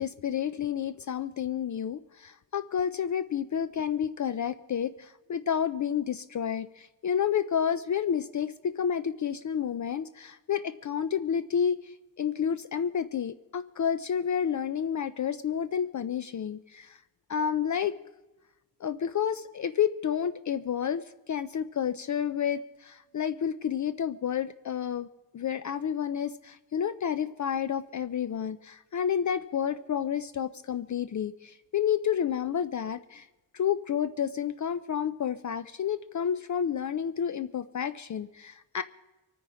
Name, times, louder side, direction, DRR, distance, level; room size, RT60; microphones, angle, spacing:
voice 1, 0.0-17.0 17.3-18.0 18.8-25.1 25.3-33.3 33.5-38.8, left 8 dB, 50° left, 12 dB, 0.5 m, -30 dB
24.5 x 9.7 x 5.0 m, 1.1 s
wide cardioid pair, 175°, 37 cm